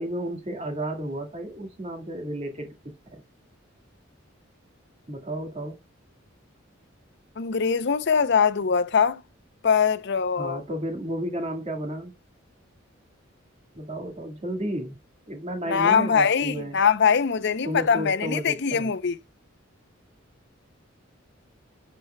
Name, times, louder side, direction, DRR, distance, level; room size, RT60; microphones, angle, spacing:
voice 1, 0.0-3.2 5.1-5.8 10.3-12.1 13.7-15.0 15.3-16.8 17.6-18.9, right 1 dB, 30° right, 1.9 m, -32 dB
voice 2, 7.4-9.2 9.6-10.6 15.7-19.2, left 6 dB, 55° left, 0.6 m, -22 dB
11.5 x 4.5 x 2.2 m
head